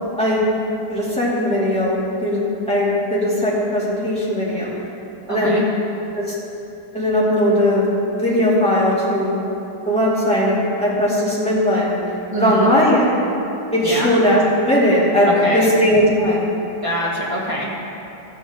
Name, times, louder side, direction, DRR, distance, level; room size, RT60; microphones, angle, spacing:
voice 1, 0.9-4.7 5.3-5.5 6.1-6.2 6.9-7.9 8.1-9.3 9.9-12.0 12.4-13.2 13.7-16.5, equal, 5° left, -9 dB, 2.5 m, -18 dB
voice 2, 5.3-5.6 12.3-12.7 13.8-14.1 15.2-15.7 16.8-17.9, equal, 20° right, -6 dB, 1.5 m, -24 dB
13.5 x 8.1 x 3.7 m, 2.9 s
omnidirectional pair, 2.1 m